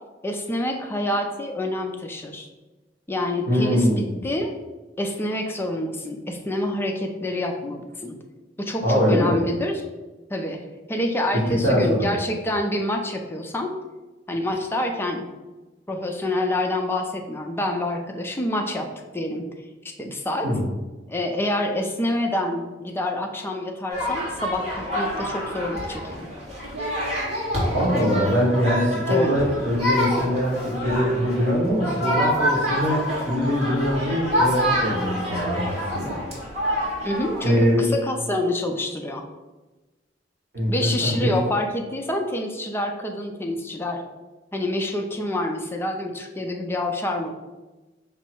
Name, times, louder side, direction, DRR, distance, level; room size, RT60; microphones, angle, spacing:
voice 1, 0.2-2.5 3.1-3.9 4.2-4.5 5.0-8.2 8.6-9.8 10.3-10.6 10.9-13.7 14.3-15.3 15.9-18.9 19.1-19.5 20.0-20.5 21.1-26.3 29.1-29.3 37.0-39.2 40.7-44.0 44.5-47.3, left 1 dB, 15° left, 3 dB, 0.4 m, -27 dB
voice 2, 3.5-4.1 8.8-9.4 11.3-12.1 20.4-20.7 27.7-36.2 37.4-37.9 40.5-41.3, equal, 60° right, -8 dB, 1.1 m, -22 dB
sound 1, 23.9-37.7, equal, 35° right, 1.4 m, -27 dB
5.4 x 2.0 x 4.4 m, 1.2 s
head